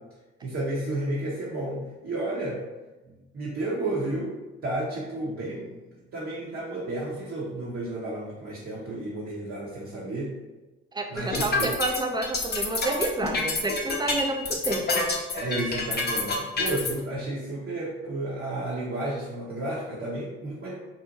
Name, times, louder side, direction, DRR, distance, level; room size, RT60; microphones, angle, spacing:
voice 1, 0.4-2.6 3.0-4.3 4.6-5.8 6.1-10.3 11.1-11.7 15.3-20.8, right 2 dB, 40° right, -6 dB, 0.7 m, -32 dB
voice 2, 10.9-15.1, right 2 dB, 15° right, 3 dB, 0.4 m, -29 dB
sound 1, 11.2-16.9, left 3 dB, 30° left, 0.6 m, -27 dB
2.6 x 2.1 x 2.8 m, 1.1 s
hypercardioid pair, 45°, 33 cm